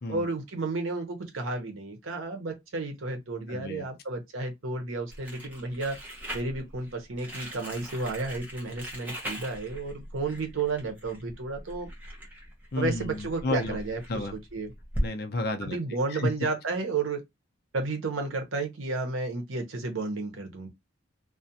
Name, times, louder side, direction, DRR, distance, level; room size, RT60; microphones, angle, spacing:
voice 1, 0.1-6.0 6.3-11.9 12.8-14.7 15.6-17.2 17.7-20.7, right 3 dB, 85° right, 0.8 m, -32 dB
voice 2, 3.5-3.9 12.7-13.8 14.1-14.3 15.0-15.8 16.1-16.3, left 2 dB, 50° left, 0.5 m, -31 dB
Crumpling crinkling, 5.1-15.1, equal, 10° right, 0.6 m, -39 dB
2.4 x 2.1 x 2.7 m
head